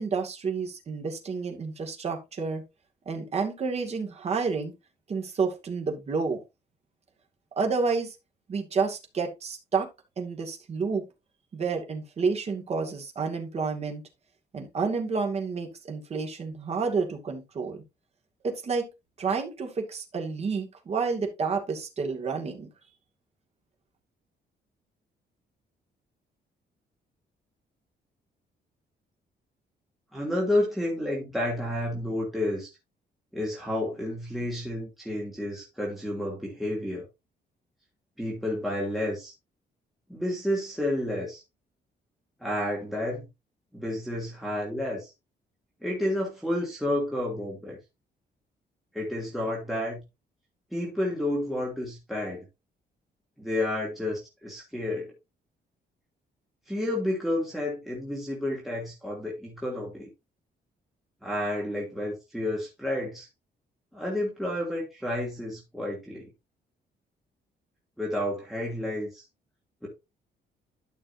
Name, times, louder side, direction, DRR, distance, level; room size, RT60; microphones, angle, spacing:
voice 1, 0.0-2.6 3.1-4.7 5.1-6.4 7.6-8.2 8.5-9.9 10.2-11.0 11.5-14.0 14.5-17.8 18.4-18.9 19.2-22.7, right 5 dB, 35° right, 2.3 m, -30 dB
voice 2, 30.1-32.7 33.3-37.0 38.2-39.3 40.1-41.4 42.4-43.3 43.7-45.1 45.8-47.8 48.9-50.0 50.7-52.4 53.4-55.1 56.7-60.1 61.2-63.3 63.9-66.3 68.0-69.2 69.8-69.9, left 1 dB, ahead, 2.9 m, -30 dB
12.5 x 6.2 x 2.7 m
cardioid pair, 170°, 17 cm